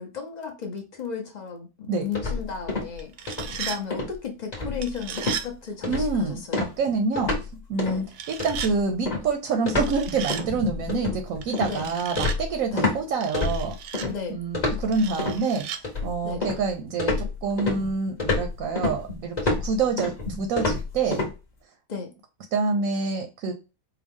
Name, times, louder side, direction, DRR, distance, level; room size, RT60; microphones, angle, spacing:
voice 1, 0.0-6.6 7.8-8.0 11.7-11.8 12.7-12.9 14.1-14.4 16.2-16.4 21.9-22.1, left 6 dB, 55° left, 2 dB, 0.4 m, -34 dB
sound 1, 2.1-3.0 3.3-3.6 3.9-4.1 4.5-4.9 5.2-5.4 5.8-6.2 6.5-7.5 7.8-8.0 8.4-13.0 13.3-14.1 14.5-15.4 15.8-16.7 17.0-21.3, left 3 dB, 30° left, 1.0 m, -28 dB
sound 2, 3.0-3.8 4.8-5.5 8.1-8.7 9.7-10.4 11.4-12.4 13.2-14.1 14.9-15.8, right 8 dB, 90° right, 1.2 m, -35 dB
voice 2, 5.9-7.3 7.7-13.8 14.3-15.7 16.0-21.2 22.5-23.5, right 4 dB, 65° right, 6 dB, 1.0 m, -27 dB
4.7 x 2.3 x 3.5 m, 0.29 s
omnidirectional pair, 1.8 m